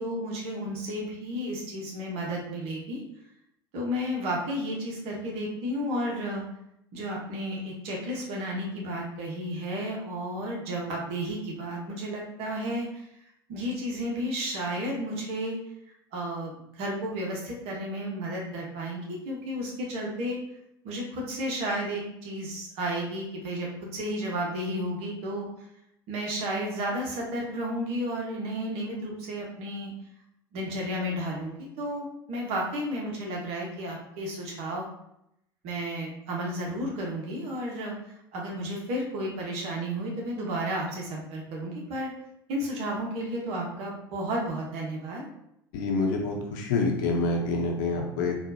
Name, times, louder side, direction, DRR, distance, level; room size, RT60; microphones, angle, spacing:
voice 1, 0.0-3.0 3.7-6.4 6.9-13.0 13.5-15.6 16.1-20.4 20.8-25.5 26.1-29.9 30.5-34.9 35.6-42.1 42.5-45.2, equal, 55° right, -2 dB, 1.2 m, -32 dB
voice 2, 45.7-48.4, left 3 dB, 60° left, 1 dB, 0.8 m, -27 dB
4.1 x 2.6 x 2.7 m, 0.78 s
figure-of-eight pair, 75°, 13 cm